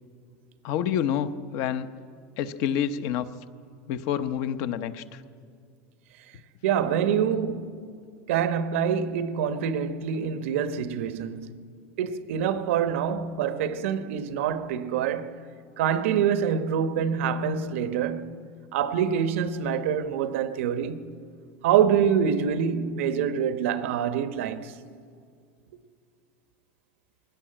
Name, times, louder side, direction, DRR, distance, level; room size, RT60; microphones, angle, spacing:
voice 1, 0.6-1.9 2.4-3.3 3.9-5.2, left 9 dB, 50° left, 0.8 m, -28 dB
voice 2, 6.6-7.9 8.3-11.5 12.0-15.4 15.8-18.4 18.7-21.2 21.6-24.8, right 8 dB, 85° right, 1.1 m, -26 dB
20.0 x 17.0 x 8.9 m
supercardioid pair, 165°, 7 cm